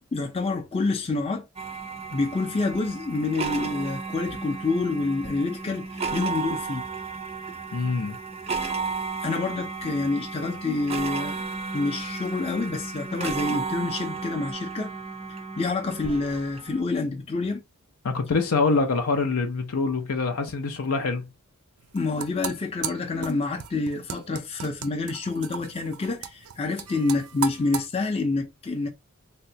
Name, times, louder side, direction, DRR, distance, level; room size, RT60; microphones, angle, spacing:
voice 1, 0.1-1.5 2.1-6.9 9.2-11.4 11.7-14.9 15.6-17.6 21.9-28.9, left 3 dB, 25° left, 0.5 m, -27 dB
sound 1, 1.6-16.8, right 4 dB, 25° right, 0.4 m, -33 dB
voice 2, 7.7-8.2 18.0-21.3, left 4 dB, 80° left, 0.6 m, -25 dB
sound 2, 21.8-27.9, right 8 dB, 85° right, 0.5 m, -36 dB
3.5 x 2.1 x 2.7 m
head